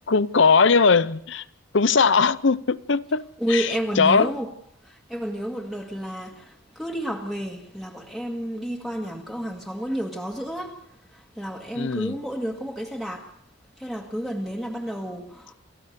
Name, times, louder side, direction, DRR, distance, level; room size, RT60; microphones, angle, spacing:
voice 1, 0.1-1.4 1.7-3.2 3.5-3.7 4.0-4.3 11.8-12.1, left 5 dB, 60° left, 0.7 m, -19 dB
voice 2, 3.4-4.5 4.8-13.3 13.8-15.5, equal, ahead, 1.7 m, -31 dB
28.0 x 15.0 x 6.7 m
head